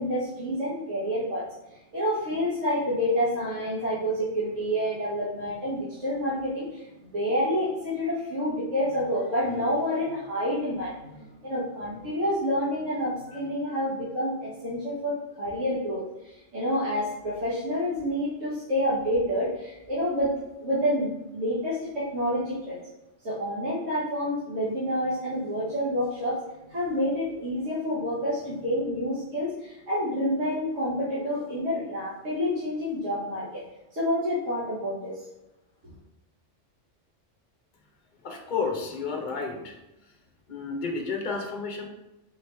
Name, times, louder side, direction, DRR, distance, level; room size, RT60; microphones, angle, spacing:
voice 1, 0.0-1.5 1.9-20.3 20.6-22.8 23.2-26.4 26.7-33.6 33.9-35.2, equal, 85° right, -9 dB, 1.5 m, -28 dB
voice 2, 38.2-40.2 40.5-41.9, left 4 dB, 45° left, 2 dB, 0.7 m, -32 dB
4.7 x 3.0 x 3.3 m, 0.96 s
omnidirectional pair, 1.2 m